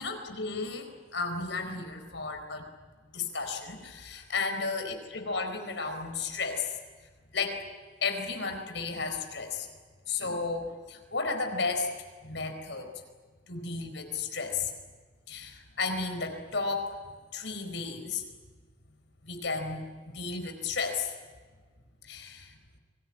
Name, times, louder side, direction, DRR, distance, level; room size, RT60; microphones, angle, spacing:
voice 1, 0.0-2.7 3.1-6.7 7.3-7.6 8.0-9.7 10.1-11.9 12.2-12.9 13.5-14.7 15.3-17.0 17.3-18.2 19.2-21.1 22.0-22.6, left 4 dB, 80° left, 5 dB, 4.6 m, -33 dB
24.0 x 20.5 x 9.9 m, 1.4 s
head